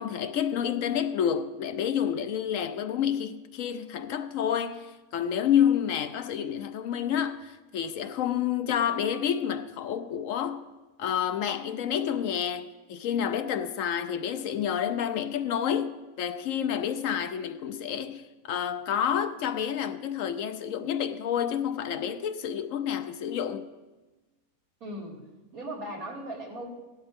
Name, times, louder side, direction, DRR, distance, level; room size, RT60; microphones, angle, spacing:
voice 1, 0.0-10.7 11.0-23.7, left 9 dB, 70° left, 0.9 m, -29 dB
voice 2, 24.8-25.2 25.5-26.7, right 1 dB, 75° right, 2.8 m, -38 dB
16.5 x 12.0 x 3.6 m
omnidirectional pair, 1.5 m